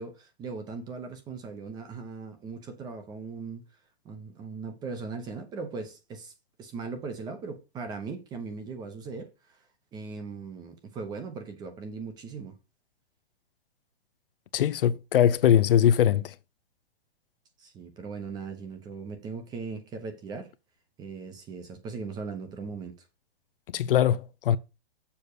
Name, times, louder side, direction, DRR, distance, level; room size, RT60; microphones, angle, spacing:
voice 1, 0.0-3.6 4.0-6.3 6.6-9.3 9.9-12.5 17.6-20.5 21.0-22.9, right 4 dB, 15° right, 0.8 m, -39 dB
voice 2, 14.5-16.3 23.7-24.6, left 10 dB, 60° left, 0.5 m, -21 dB
7.0 x 4.1 x 6.6 m
hypercardioid pair, 150°, 32 cm